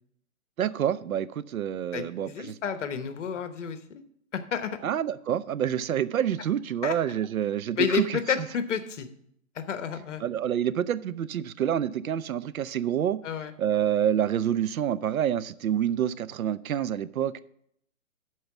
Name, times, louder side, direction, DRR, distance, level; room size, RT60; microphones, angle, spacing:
voice 1, 0.6-2.6 4.8-8.5 10.2-13.2 13.6-17.4, right 10 dB, 80° right, 0.7 m, -27 dB
voice 2, 1.9-3.8 4.3-4.8 6.8-7.0 7.8-9.1 9.5-10.2 13.2-13.5, left 7 dB, 60° left, 1.1 m, -30 dB
12.0 x 4.7 x 6.0 m
hypercardioid pair, 155°, 41 cm